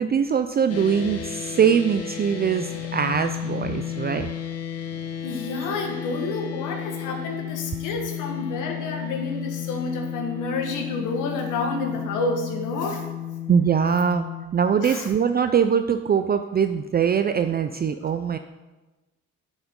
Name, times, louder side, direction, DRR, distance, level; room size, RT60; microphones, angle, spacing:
voice 1, 0.0-4.3 13.5-18.4, right 7 dB, 30° right, 8 dB, 0.4 m, -22 dB
sound 1, 0.7-14.5, left 10 dB, 55° left, 1.1 m, -33 dB
voice 2, 5.2-13.0 14.8-15.1, left 3 dB, 90° left, 3 dB, 1.5 m, -29 dB
9.1 x 7.2 x 3.7 m, 1.1 s
cardioid pair, 90°, 30 cm